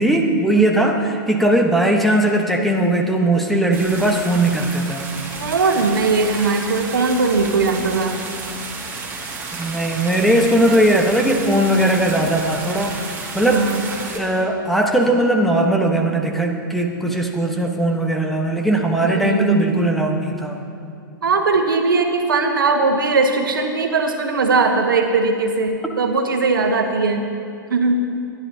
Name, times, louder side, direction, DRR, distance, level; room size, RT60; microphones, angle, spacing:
voice 1, 0.0-5.0 9.6-13.7 14.1-20.6, right 1 dB, ahead, 1 dB, 1.2 m, -19 dB
voice 2, 0.5-0.9 5.4-8.2 13.5-13.8 19.0-20.1 21.2-27.3 27.7-27.9, right 4 dB, 75° right, 4 dB, 1.4 m, -19 dB
sound 1, 3.7-14.2, right 4 dB, 20° right, 2.3 m, -32 dB
24.5 x 10.5 x 2.8 m, 2.4 s
figure-of-eight pair, 110°, 11 cm